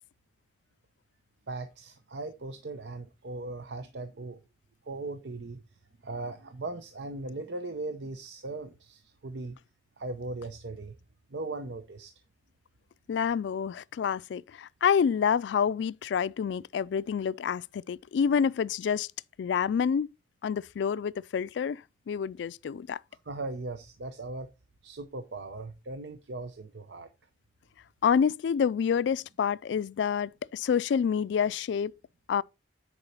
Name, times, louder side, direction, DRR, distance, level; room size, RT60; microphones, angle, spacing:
voice 1, 1.5-4.4 4.9-5.6 6.0-9.6 10.0-11.0 11.3-12.1 23.3-24.5 24.8-27.1, right 2 dB, 80° right, 0.8 m, -38 dB
voice 2, 13.1-19.1 19.4-20.1 20.4-21.8 22.1-23.0 28.0-31.9 32.3-32.4, left 7 dB, 85° left, 0.3 m, -28 dB
9.7 x 4.7 x 4.2 m
head